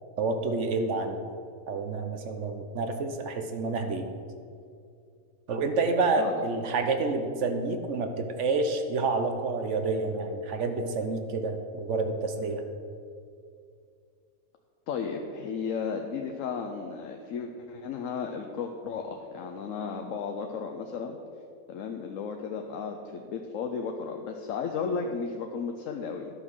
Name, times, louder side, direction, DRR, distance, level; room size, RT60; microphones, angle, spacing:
voice 1, 0.2-1.2 1.7-4.0 5.5-12.6, right 3 dB, 60° right, 6 dB, 1.2 m, -29 dB
voice 2, 14.9-21.2 21.7-26.3, left 5 dB, 70° left, 4 dB, 1.0 m, -34 dB
11.5 x 5.8 x 6.2 m, 2.4 s
omnidirectional pair, 1.5 m